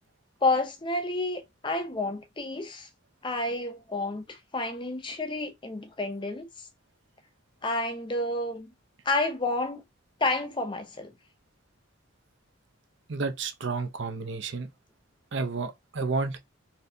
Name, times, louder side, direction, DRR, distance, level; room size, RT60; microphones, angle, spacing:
voice 1, 0.4-2.9 3.2-6.7 7.6-8.7 9.1-9.8 10.2-11.1, left 2 dB, 20° left, 0.5 m, -30 dB
voice 2, 13.1-14.7 15.3-16.4, right 4 dB, 60° right, 0.6 m, -31 dB
4.1 x 3.3 x 2.7 m
head